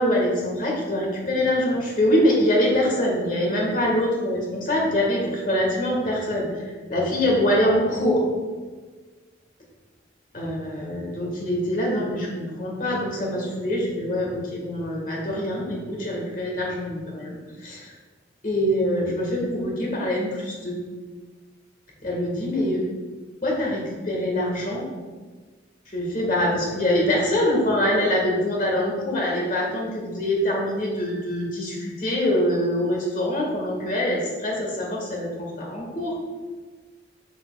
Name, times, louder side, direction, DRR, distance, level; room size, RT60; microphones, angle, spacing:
voice 1, 0.0-8.2 10.3-17.4 17.6-17.9 18.4-20.7 22.0-22.8 23.4-24.8 25.9-36.1, left 1 dB, 45° left, -2 dB, 1.7 m, -24 dB
8.5 x 7.1 x 2.4 m, 1.4 s
head